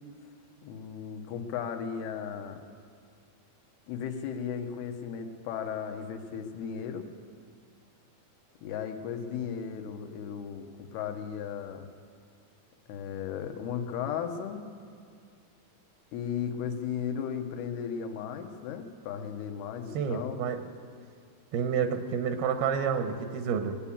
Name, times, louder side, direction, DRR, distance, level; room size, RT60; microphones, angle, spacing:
voice 1, 0.6-2.6 3.9-7.1 8.6-11.8 12.9-14.7 16.1-20.4, left 7 dB, 90° left, 5 dB, 3.1 m, -35 dB
voice 2, 19.9-20.6 21.5-23.8, right 7 dB, 85° right, 7 dB, 2.7 m, -29 dB
22.0 x 8.5 x 7.2 m, 2.3 s
omnidirectional pair, 4.4 m